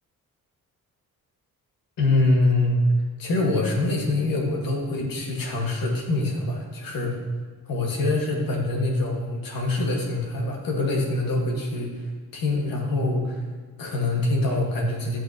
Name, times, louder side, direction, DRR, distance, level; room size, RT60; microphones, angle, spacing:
voice 1, 2.0-2.8 3.2-7.2 7.7-11.9 12.3-13.4 13.8-15.2, left 2 dB, 75° left, 0 dB, 1.8 m, -24 dB
13.0 x 5.8 x 2.9 m, 1.4 s
cardioid pair, 80°, 35 cm